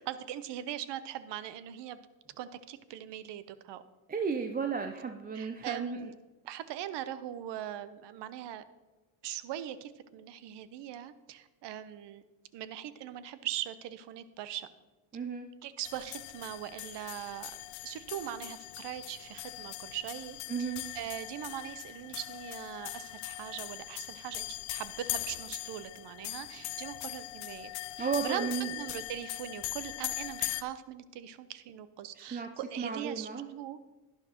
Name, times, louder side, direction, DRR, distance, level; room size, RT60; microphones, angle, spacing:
voice 1, 0.1-2.0 2.4-3.8 5.4-6.1 6.5-8.7 9.2-12.2 12.5-14.7 15.6-20.4 20.9-27.7 28.0-28.5 28.8-33.8, right 11 dB, 55° right, 14 dB, 0.8 m, -41 dB
voice 2, 4.1-6.1 15.1-15.5 20.5-20.9 28.0-28.7 32.1-33.5, right 6 dB, 20° right, 6 dB, 0.6 m, -34 dB
sound 1, 15.8-30.6, left 18 dB, 65° left, 0.7 m, -40 dB
11.5 x 10.5 x 3.0 m, 1.2 s
supercardioid pair, 75°, 50 cm